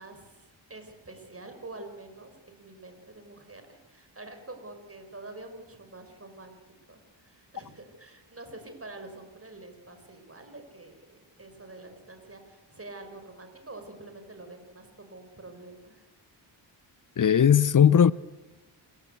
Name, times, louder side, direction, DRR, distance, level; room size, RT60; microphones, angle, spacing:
voice 1, 0.0-6.6 6.9-16.1, right 2 dB, 30° right, 5.7 m, -46 dB
voice 2, 17.2-18.1, left 8 dB, 40° left, 0.7 m, -18 dB
26.5 x 15.5 x 8.3 m
supercardioid pair, 50°, 49 cm